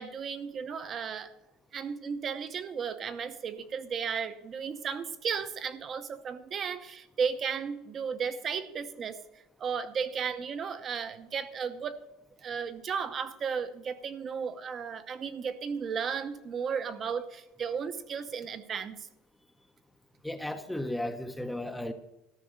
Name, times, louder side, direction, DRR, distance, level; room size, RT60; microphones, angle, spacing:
voice 1, 0.0-1.3 1.7-9.2 9.6-12.0 12.4-19.0, right 6 dB, 30° right, 10 dB, 0.7 m, -34 dB
voice 2, 20.2-21.9, left 1 dB, 5° left, 8 dB, 0.6 m, -34 dB
13.5 x 6.0 x 6.5 m, 0.94 s
cardioid pair, 150°, 0 cm